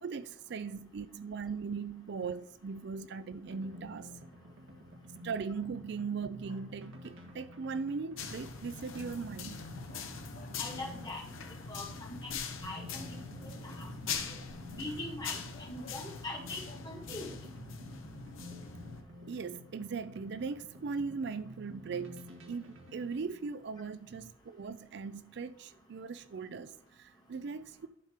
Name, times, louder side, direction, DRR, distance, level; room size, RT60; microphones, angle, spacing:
voice 1, 0.0-4.1 5.2-9.7 19.3-27.9, right 5 dB, 55° right, 0.4 m, -39 dB
sound 1, 3.5-23.2, left 1 dB, 70° right, 1.6 m, -51 dB
sound 2, 6.4-6.9 8.7-8.8 9.9-10.8 11.4-12.0 14.6-14.7 15.2-16.3 16.6-16.9, left 3 dB, 40° left, 0.9 m, -57 dB
sound 3, 8.2-19.0, left 5 dB, 75° left, 1.1 m, -42 dB
voice 2, 10.6-11.2 11.7-13.9 14.3-14.4 14.7-17.3, left 2 dB, 20° left, 2.0 m, -42 dB
11.5 x 4.4 x 5.0 m
head